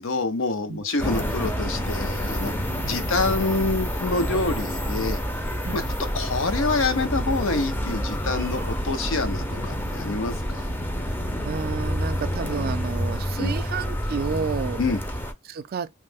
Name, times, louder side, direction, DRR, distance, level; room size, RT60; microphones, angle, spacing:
voice 1, 0.0-2.5 2.8-5.2 5.7-5.8 6.1-10.7 13.4-13.6 14.8-15.0, left 3 dB, 75° left, 0.7 m, -26 dB
sound 1, 1.0-15.3, equal, 10° left, 0.5 m, -28 dB
voice 2, 2.7-3.1 5.6-5.9 11.4-14.8 15.4-15.9, right 5 dB, 50° right, 0.4 m, -31 dB
3.0 x 2.0 x 3.4 m
head